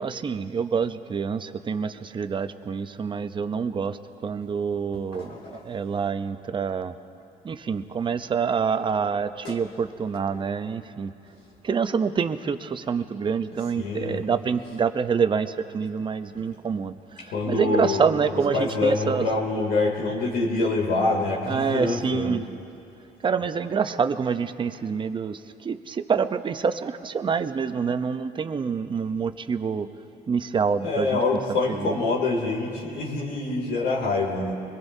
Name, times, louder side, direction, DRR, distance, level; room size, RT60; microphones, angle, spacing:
voice 1, 0.0-5.3 5.6-6.9 7.4-11.1 11.6-17.0 17.5-19.3 21.5-22.4 23.2-29.9 30.3-31.2 31.7-32.0, right 6 dB, 30° right, 10 dB, 0.6 m, -26 dB
voice 2, 5.1-5.6 9.4-9.6 13.7-14.2 17.3-18.1 18.5-22.3 30.8-34.5, left 3 dB, 80° left, -3 dB, 2.7 m, -25 dB
24.0 x 21.0 x 2.7 m, 2.7 s
cardioid pair, 110°, 17 cm